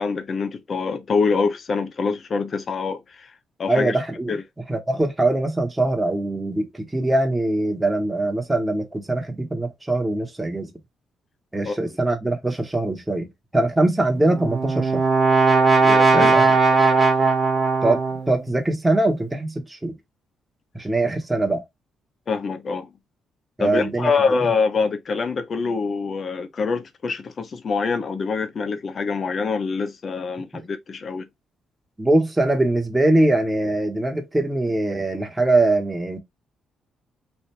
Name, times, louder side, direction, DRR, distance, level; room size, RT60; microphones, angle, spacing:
voice 1, 0.0-3.3 3.6-4.0 4.3-4.4 11.6-11.8 15.8-16.5 22.3-22.9 23.6-31.3, left 4 dB, 45° left, 0.8 m, -25 dB
voice 2, 3.7-4.4 4.7-10.7 11.5-13.3 13.5-15.0 16.1-16.5 17.8-18.0 18.3-20.0 20.7-21.6 23.6-24.1 30.5-30.6 32.0-36.2, right 2 dB, 10° right, 1.2 m, -22 dB
Brass instrument, 14.2-18.3, right 4 dB, 35° right, 1.4 m, -18 dB
3.4 x 2.6 x 4.3 m
cardioid pair, 90°, 0 cm